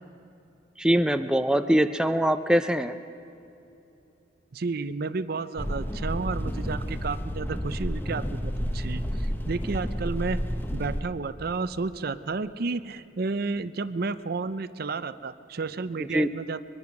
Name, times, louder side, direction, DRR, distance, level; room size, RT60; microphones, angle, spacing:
voice 1, 0.8-3.0 16.0-16.3, equal, 5° right, 8 dB, 0.5 m, -23 dB
voice 2, 4.5-10.4 10.7-16.6, right 4 dB, 55° right, 13 dB, 0.6 m, -32 dB
sound 1, 5.6-11.0, equal, 10° left, 1.1 m, -31 dB
23.0 x 21.5 x 6.0 m, 2.8 s
head